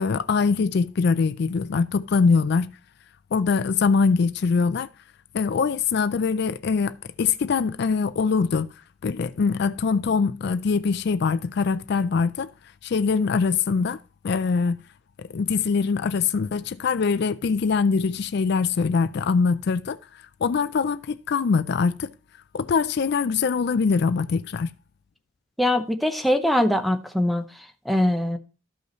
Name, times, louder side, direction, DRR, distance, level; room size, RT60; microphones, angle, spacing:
voice 1, 0.0-2.7 3.3-4.9 5.3-8.7 9.0-12.5 12.8-14.8 15.3-20.0 20.4-22.1 22.5-24.7, left 5 dB, 55° left, 0.4 m, -23 dB
voice 2, 25.6-27.4 27.9-28.4, left 1 dB, ahead, 0.7 m, -22 dB
13.0 x 5.4 x 3.0 m
head